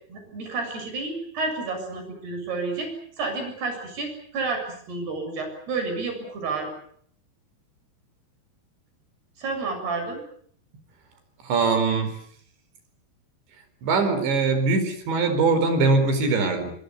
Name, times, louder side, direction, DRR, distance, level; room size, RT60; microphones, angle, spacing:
voice 1, 0.1-2.9 3.2-6.7 9.4-10.2, right 3 dB, 65° right, 5 dB, 9.3 m, -30 dB
voice 2, 11.4-12.1 13.8-16.7, right 3 dB, 80° right, 9 dB, 6.7 m, -22 dB
25.5 x 23.5 x 8.4 m, 0.63 s
omnidirectional pair, 5.0 m